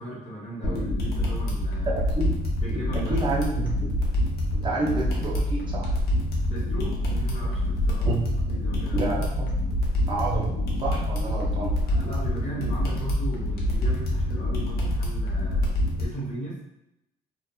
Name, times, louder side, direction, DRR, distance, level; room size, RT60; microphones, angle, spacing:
voice 1, 0.0-2.0 2.6-3.2 6.4-8.1 8.5-9.0 11.9-15.7 16.0-16.6, right 1 dB, 45° left, -5 dB, 1.0 m, -37 dB
sound 1, 0.6-16.1, left 1 dB, 65° left, 0.8 m, -26 dB
voice 2, 1.9-2.3 2.7-3.9 4.5-5.9 8.1-8.4 8.9-9.5 10.1-11.8, right 3 dB, 30° right, -5 dB, 0.6 m, -29 dB
2.7 x 2.2 x 2.3 m, 0.86 s
cardioid pair, 110°, 17 cm